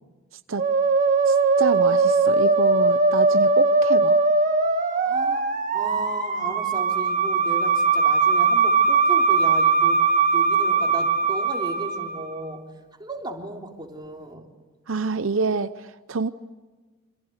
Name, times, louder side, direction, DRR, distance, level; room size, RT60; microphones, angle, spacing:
Musical instrument, 0.6-12.4, right 4 dB, 40° right, 1.8 m, -20 dB
voice 1, 1.3-4.2 14.9-16.3, right 4 dB, 75° right, 11 dB, 0.8 m, -27 dB
voice 2, 4.9-5.5 5.7-10.0 10.3-12.6 13.0-14.5, right 1 dB, 20° right, 1 dB, 3.6 m, -35 dB
27.0 x 27.0 x 8.1 m, 1.3 s
head